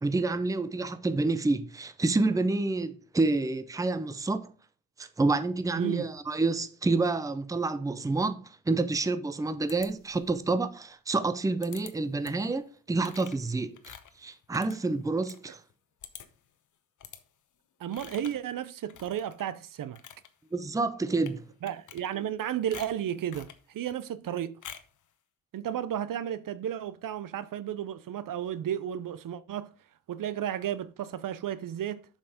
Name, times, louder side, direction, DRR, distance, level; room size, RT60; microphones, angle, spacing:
voice 1, 0.0-4.5 5.0-12.6 12.9-15.6 20.5-21.4, right 3 dB, 10° right, 0.6 m, -28 dB
voice 2, 5.8-6.1 17.8-20.0 21.6-24.6 25.5-29.7 30.1-32.1, right 10 dB, 65° right, 0.6 m, -33 dB
sound 1, 9.7-10.4 11.6-11.9 12.2-12.5 13.0-15.4 15.7-15.8 16.0-16.5 17.0-17.2 17.9-18.5 18.9-19.4 19.8-20.3 21.1-21.4 21.7-22.4 22.7-23.6 24.6-25.0, left 8 dB, 60° left, 1.0 m, -47 dB
7.0 x 5.8 x 4.9 m
wide cardioid pair, 145°, 35 cm